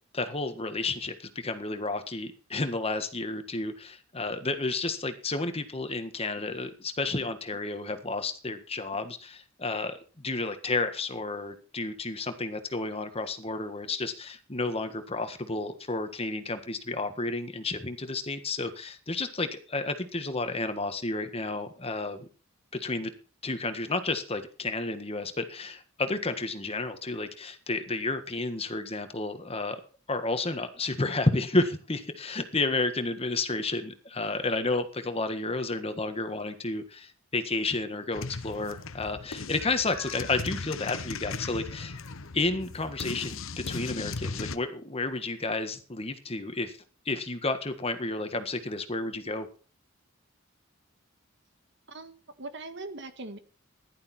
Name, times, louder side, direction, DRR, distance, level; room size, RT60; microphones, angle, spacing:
voice 1, 0.1-22.3 22.7-23.1 23.4-29.8 30.1-42.0 42.3-46.8 47.0-49.5, left 3 dB, 30° left, 8 dB, 1.6 m, -31 dB
sound 1, 38.1-44.6, left 4 dB, 75° left, 1.0 m, -37 dB
voice 2, 51.9-53.4, right 2 dB, 55° right, 9 dB, 1.8 m, -41 dB
15.5 x 11.5 x 4.4 m, 0.37 s
head